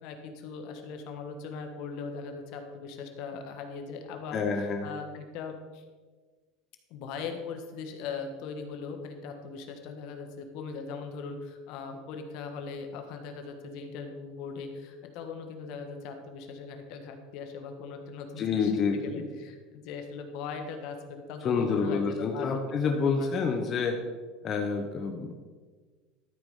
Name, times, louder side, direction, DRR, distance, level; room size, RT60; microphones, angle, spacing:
voice 1, 0.0-5.8 6.9-23.3, left 5 dB, 65° left, 5 dB, 1.5 m, -40 dB
voice 2, 4.3-4.9 18.4-19.2 21.4-24.0 24.4-25.3, left 5 dB, 40° left, 3 dB, 1.0 m, -28 dB
12.5 x 4.9 x 5.5 m, 1.4 s
supercardioid pair, 110°, 0 cm